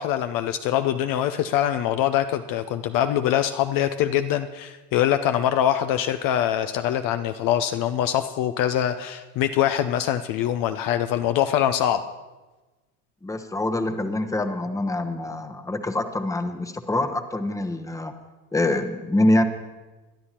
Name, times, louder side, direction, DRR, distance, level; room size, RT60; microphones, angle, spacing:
voice 1, 0.0-12.0, left 11 dB, 50° left, 9 dB, 0.6 m, -23 dB
voice 2, 13.2-18.1 18.5-19.4, left 1 dB, 5° left, 8 dB, 0.9 m, -25 dB
22.0 x 11.0 x 2.9 m, 1.2 s
hypercardioid pair, 80°, 45 cm